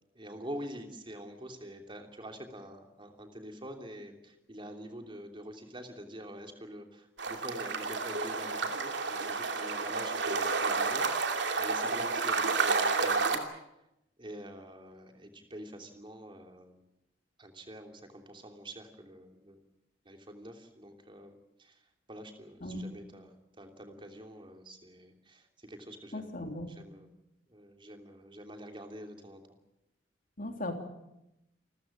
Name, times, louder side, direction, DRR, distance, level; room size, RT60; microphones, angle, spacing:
voice 1, 0.1-13.4 14.2-16.8 17.4-19.6 20.0-21.8 22.1-27.1 27.5-29.4, equal, 25° right, 4 dB, 3.0 m, -46 dB
sound 1, 7.2-13.4, right 4 dB, 65° right, 2.7 m, -30 dB
voice 2, 26.1-26.7 30.4-30.7, left 1 dB, 45° left, 4 dB, 3.3 m, -37 dB
28.0 x 14.5 x 9.0 m, 0.89 s
head